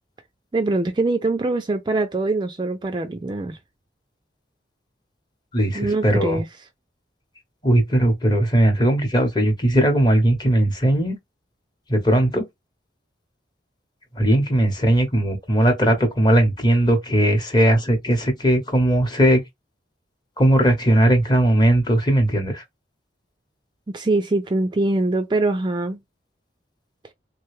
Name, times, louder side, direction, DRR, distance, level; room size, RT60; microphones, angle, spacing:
voice 1, 0.5-3.6 5.7-6.5 23.9-26.0, right 2 dB, 25° right, 0.3 m, -23 dB
voice 2, 5.5-6.4 7.6-11.1 11.9-12.5 14.2-19.4 20.4-22.6, right 1 dB, 25° left, 0.9 m, -18 dB
3.2 x 2.2 x 3.1 m
head